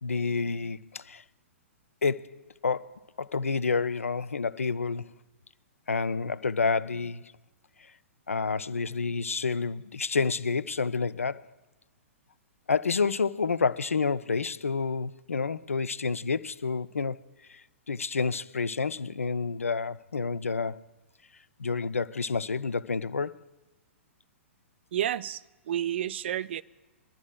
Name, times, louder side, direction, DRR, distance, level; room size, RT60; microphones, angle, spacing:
voice 1, 0.0-1.2 2.0-5.1 5.9-7.3 8.3-11.5 12.7-17.2 17.5-20.8 21.6-23.4, left 4 dB, 80° left, 0.4 m, -29 dB
voice 2, 24.9-26.6, right 11 dB, 55° right, 0.4 m, -30 dB
25.0 x 11.5 x 2.2 m
figure-of-eight pair, 110°, 7 cm